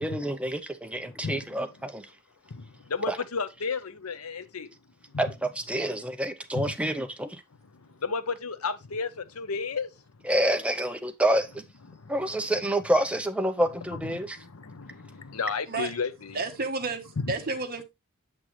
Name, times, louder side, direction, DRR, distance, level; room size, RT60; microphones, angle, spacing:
voice 1, 0.0-2.1 3.1-3.2 5.2-7.4 10.3-11.6 12.1-14.4, right 1 dB, 5° right, 0.7 m, -28 dB
voice 2, 0.9-1.9 2.5-4.7 5.1-5.2 6.5-6.8 7.7-9.9 11.9-12.2 13.9-16.4 17.2-17.4, left 4 dB, 90° left, 0.9 m, -33 dB
voice 3, 16.3-17.8, right 3 dB, 45° right, 1.2 m, -31 dB
7.5 x 6.1 x 3.2 m
head